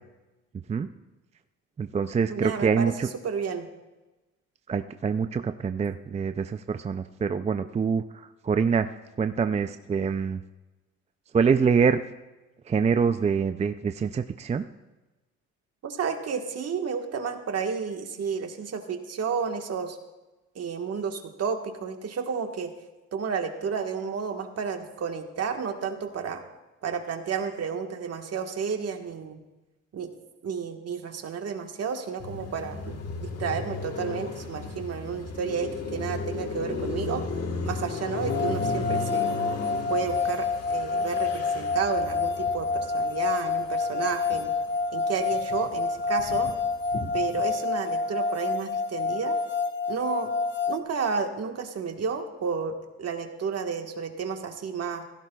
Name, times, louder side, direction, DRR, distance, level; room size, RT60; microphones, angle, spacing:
voice 1, 1.8-3.1 4.7-8.9 9.2-10.4 11.3-12.0 12.7-14.6, right 6 dB, 25° right, 9 dB, 0.4 m, -25 dB
voice 2, 2.3-2.9 3.2-3.7 15.8-20.0 20.5-22.7 23.1-26.4 26.8-29.4 29.9-30.1 30.4-37.3 37.6-39.3 39.9-44.5 44.9-46.5 47.1-49.4 49.9-50.3 50.7-55.0, right 6 dB, 55° right, 5 dB, 1.5 m, -31 dB
Car passing by, 32.2-44.7 45.0-47.5, left 4 dB, 55° left, 1.5 m, -35 dB
sound 1, 38.3-50.8, left 4 dB, 35° left, 1.1 m, -28 dB
16.5 x 15.5 x 2.3 m, 1.1 s
cardioid pair, 90°, 30 cm